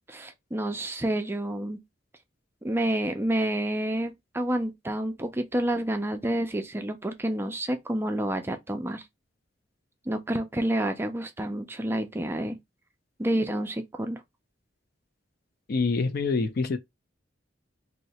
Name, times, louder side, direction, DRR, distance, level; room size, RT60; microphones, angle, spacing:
voice 1, 0.1-1.8 2.6-9.0 10.1-12.6 13.2-14.2, right 1 dB, 10° right, 0.4 m, -29 dB
voice 2, 15.7-16.8, left 4 dB, 50° left, 0.4 m, -26 dB
2.8 x 2.1 x 4.0 m
head